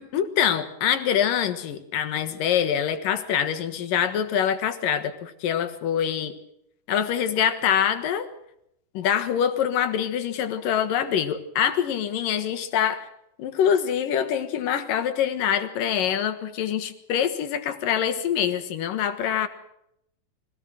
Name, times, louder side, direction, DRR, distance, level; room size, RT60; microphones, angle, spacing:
voice 1, 0.0-6.3 6.9-8.3 8.9-13.1 13.4-19.5, left 9 dB, 85° left, 9 dB, 3.3 m, -25 dB
23.5 x 17.5 x 7.6 m, 0.77 s
omnidirectional pair, 3.8 m